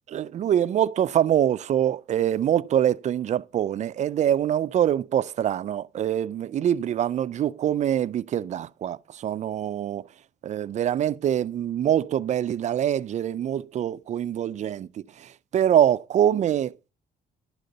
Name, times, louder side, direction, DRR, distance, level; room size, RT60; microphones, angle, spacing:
voice 1, 0.1-10.0 10.4-14.9 15.2-16.7, right 10 dB, 45° right, 0.4 m, -24 dB
11.0 x 3.8 x 6.5 m
cardioid pair, 110°, 17 cm